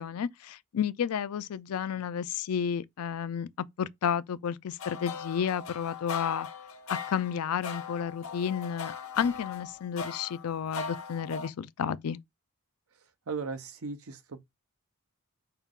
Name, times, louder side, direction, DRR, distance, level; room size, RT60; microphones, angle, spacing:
voice 1, 0.0-6.5 6.9-12.2, left 8 dB, 90° left, 0.4 m, -32 dB
sound 1, 4.8-11.5, left 5 dB, 65° left, 0.8 m, -39 dB
voice 2, 13.3-14.4, right 4 dB, 80° right, 0.8 m, -37 dB
5.6 x 2.4 x 3.6 m
head